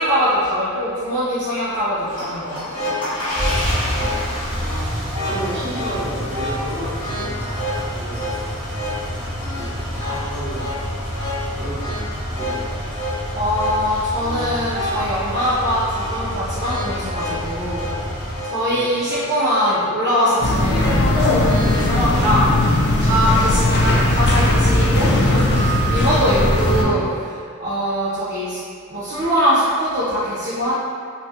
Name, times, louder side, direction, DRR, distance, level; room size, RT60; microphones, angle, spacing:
voice 1, 0.0-2.9 13.3-17.9 18.4-22.5 23.0-27.1 27.6-28.6 28.9-30.7, equal, 50° right, -11 dB, 0.6 m, -22 dB
sound 1, 1.9-18.4, equal, 20° left, 0.9 m, -28 dB
sound 2, 2.7-22.0, left 1 dB, 75° left, 0.9 m, -31 dB
voice 2, 3.9-4.4 5.2-8.5 9.5-11.0 11.5-12.8 18.7-19.0 23.6-24.1 26.5-27.1, right 1 dB, 30° right, -11 dB, 1.2 m, -32 dB
sound 3, 20.4-26.8, left 1 dB, 50° left, 0.4 m, -17 dB
3.5 x 2.4 x 2.7 m, 2.1 s
head